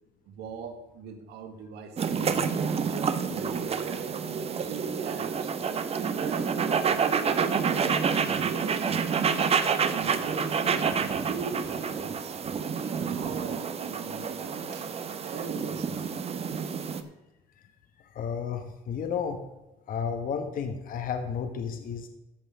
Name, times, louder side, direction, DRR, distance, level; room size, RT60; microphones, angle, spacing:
voice 1, 0.2-2.4 2.8-5.5 5.9-9.1 9.7-12.4 12.8-14.9 15.2-16.2, right 5 dB, 80° right, 6 dB, 1.6 m, -40 dB
sound 1, 2.0-17.0, right 6 dB, 35° right, 1.0 m, -28 dB
voice 2, 18.1-19.4 19.9-22.1, left 6 dB, 55° left, 7 dB, 1.3 m, -32 dB
14.5 x 5.6 x 5.5 m, 1.0 s
cardioid pair, 110°, 17 cm